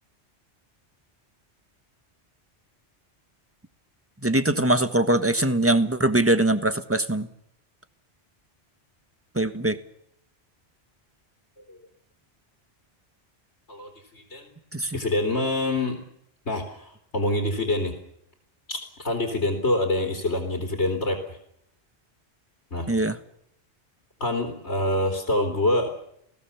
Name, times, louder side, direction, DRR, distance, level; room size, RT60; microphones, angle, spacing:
voice 1, 4.2-7.3 9.3-9.8 14.7-15.0 22.9-23.2, right 1 dB, 10° right, 10 dB, 1.4 m, -22 dB
voice 2, 13.7-14.5 14.9-16.0 16.5-17.9 18.7-21.4 22.7-22.9 24.2-25.9, left 1 dB, 80° left, 2 dB, 3.8 m, -26 dB
29.0 x 18.0 x 7.2 m, 0.74 s
omnidirectional pair, 1.2 m